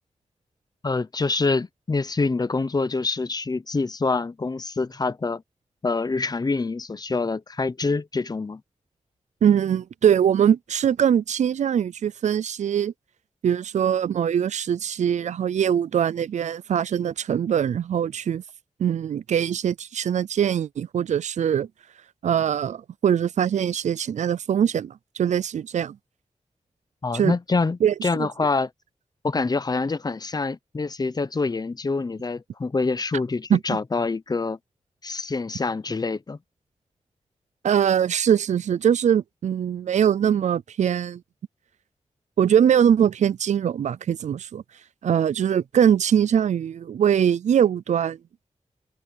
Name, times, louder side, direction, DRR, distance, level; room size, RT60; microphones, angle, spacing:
voice 1, 0.8-5.4 5.8-8.6 27.0-28.7 29.2-34.6 35.0-36.4, left 3 dB, 35° left, 0.7 m, -26 dB
voice 2, 9.4-12.9 13.4-18.4 18.8-21.7 22.2-26.0 27.1-27.3 27.8-28.3 33.5-33.6 37.6-41.2 42.4-44.6 45.0-48.2, right 9 dB, 85° right, 0.4 m, -22 dB
wide cardioid pair, 105°, 12 cm